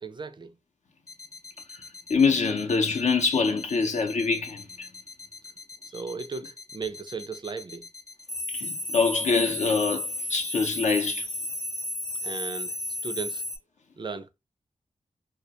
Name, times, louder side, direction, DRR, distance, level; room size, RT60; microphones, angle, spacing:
voice 1, 0.0-0.5 5.9-7.9 12.2-12.8 13.0-13.4 14.0-14.3, right 4 dB, 40° right, 0.4 m, -36 dB
sound 1, 1.1-13.6, left 1 dB, 25° left, 0.6 m, -35 dB
voice 2, 2.1-4.9 8.5-11.3, left 4 dB, 70° left, 0.6 m, -25 dB
2.2 x 2.1 x 2.8 m
cardioid pair, 55°, 13 cm